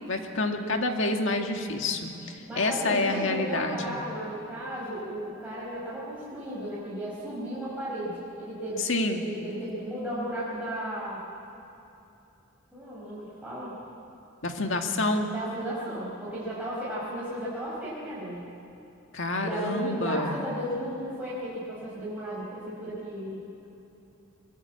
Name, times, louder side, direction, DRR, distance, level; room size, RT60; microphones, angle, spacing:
voice 1, 0.1-4.0 8.8-9.2 14.4-15.3 19.1-20.3, left 2 dB, 60° left, 4 dB, 2.0 m, -28 dB
voice 2, 2.5-11.2 12.7-13.7 15.3-18.4 19.3-23.7, right 1 dB, 5° right, -9 dB, 5.0 m, -34 dB
23.0 x 22.5 x 8.4 m, 2.9 s
head